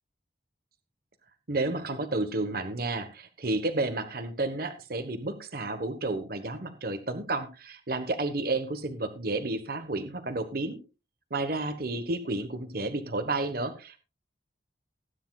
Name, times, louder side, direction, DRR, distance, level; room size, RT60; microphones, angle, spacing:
voice 1, 1.5-10.8 11.3-14.0, right 2 dB, 50° right, 8 dB, 1.2 m, -31 dB
19.0 x 9.8 x 2.4 m, 0.31 s
head